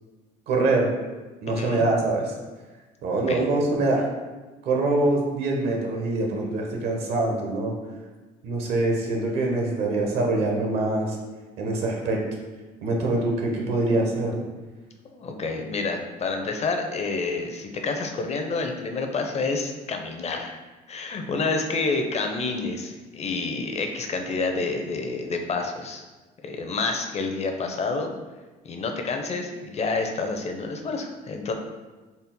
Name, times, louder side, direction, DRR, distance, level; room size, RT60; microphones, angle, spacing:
voice 1, 0.5-0.9 1.4-2.3 3.0-4.1 4.6-7.7 8.4-11.2 11.6-12.2 12.8-14.4, right 2 dB, 80° right, 0 dB, 0.8 m, -24 dB
voice 2, 1.5-1.9 3.3-3.4 15.1-20.6 20.9-26.0 26.4-28.1 28.6-31.5, left 3 dB, 40° left, 4 dB, 0.6 m, -28 dB
4.1 x 2.1 x 3.7 m, 1.2 s
cardioid pair, 85°, 17 cm